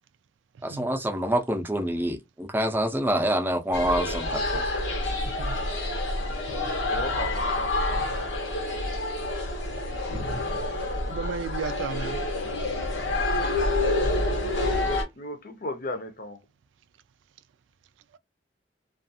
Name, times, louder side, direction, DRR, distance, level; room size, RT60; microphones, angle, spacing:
voice 1, 0.6-4.7, right 1 dB, 10° right, 0.5 m, -26 dB
sound 1, 3.7-15.0, left 2 dB, 90° left, 0.9 m, -28 dB
voice 2, 5.2-5.6 11.0-12.2, right 6 dB, 85° right, 0.3 m, -34 dB
voice 3, 6.9-8.1 14.6-16.4, left 2 dB, 50° left, 0.6 m, -35 dB
2.4 x 2.4 x 2.7 m
head